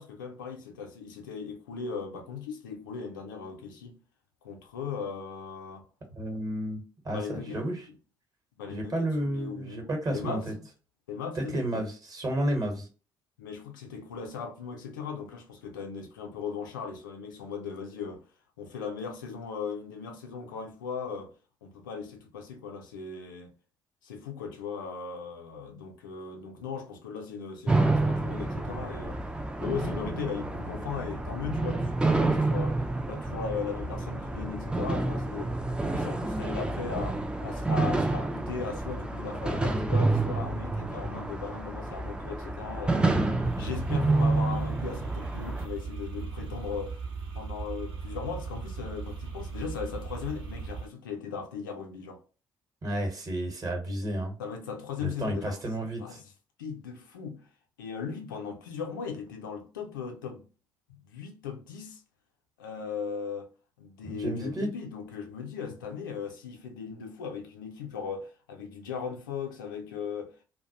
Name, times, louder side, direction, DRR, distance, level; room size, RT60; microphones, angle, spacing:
voice 1, 0.0-3.9 4.4-5.8 7.1-7.6 8.6-10.6 11.1-11.8 13.4-18.2 18.6-21.3 21.6-23.5 24.0-29.3 29.6-47.0 47.3-52.2 54.4-56.3 56.6-57.5 57.8-60.5 60.9-62.0 62.6-63.5 63.8-70.3, left 6 dB, 75° left, 0.5 m, -38 dB
voice 2, 6.2-7.8 8.7-10.5 11.3-12.9 52.8-54.4 55.0-56.2 64.0-64.7, right 1 dB, 35° right, 1.0 m, -31 dB
sound 1, 27.7-45.7, right 2 dB, 10° right, 0.3 m, -29 dB
sound 2, 43.4-50.9, right 5 dB, 60° right, 0.9 m, -38 dB
2.2 x 2.1 x 2.7 m
figure-of-eight pair, 45°, 11 cm